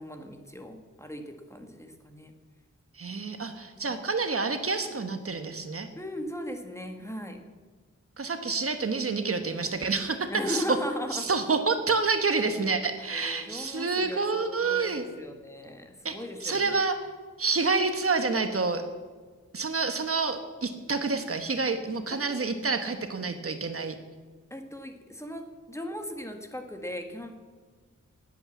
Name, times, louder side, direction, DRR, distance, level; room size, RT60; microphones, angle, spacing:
voice 1, 0.0-2.3 3.8-3.9 6.0-7.4 10.3-11.4 13.1-16.8 22.3-22.4 24.5-27.4, equal, 10° left, 4 dB, 1.5 m, -38 dB
voice 2, 2.9-5.9 8.2-10.6 11.1-15.0 16.0-16.2 16.4-17.0 17.4-18.8 19.5-23.9, right 4 dB, 50° right, 7 dB, 1.3 m, -28 dB
19.0 x 8.3 x 7.3 m, 1.5 s
wide cardioid pair, 140°, 29 cm